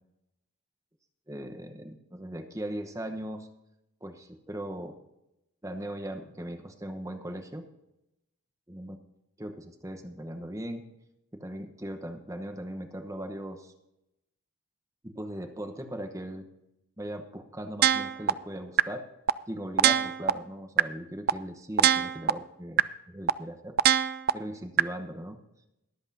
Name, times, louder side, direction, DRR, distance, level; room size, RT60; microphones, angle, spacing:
voice 1, 1.3-3.5 4.0-5.0 5.6-7.7 8.7-9.0 9.4-10.8 11.3-13.7 15.0-16.5 17.0-19.0 19.5-23.7 24.3-25.4, right 1 dB, 15° right, 6 dB, 0.9 m, -39 dB
sound 1, 17.8-18.3 18.8-18.9 19.3-19.4 19.8-20.3 20.8-20.9 21.3-21.4 21.8-22.3 22.8-22.9 23.3-23.4 23.8-24.3 24.8-24.9, right 10 dB, 45° right, 0.3 m, -21 dB
21.5 x 8.0 x 2.7 m, 0.88 s
head